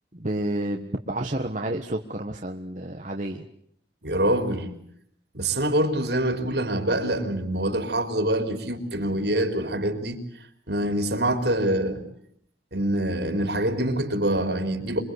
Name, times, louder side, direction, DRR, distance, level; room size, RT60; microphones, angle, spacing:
voice 1, 0.1-3.5, right 1 dB, 40° right, 2 dB, 1.5 m, -30 dB
voice 2, 4.0-4.7 5.3-10.2 10.7-12.0 12.7-15.0, right 1 dB, 65° right, 7 dB, 4.1 m, -25 dB
27.5 x 23.0 x 8.2 m, 0.70 s
head